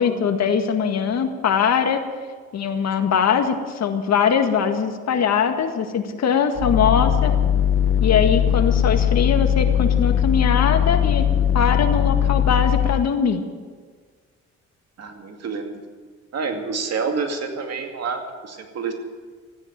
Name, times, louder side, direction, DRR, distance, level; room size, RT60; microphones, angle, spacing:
voice 1, 0.0-2.0 2.5-7.3 8.0-11.2 11.5-13.4, left 7 dB, 60° left, 6 dB, 1.9 m, -21 dB
sound 1, 6.6-13.1, left 9 dB, 45° left, 0.7 m, -19 dB
voice 2, 15.0-15.8 16.3-18.9, right 5 dB, 55° right, 4 dB, 2.4 m, -28 dB
15.0 x 9.8 x 9.3 m, 1.5 s
cardioid pair, 90°, 30 cm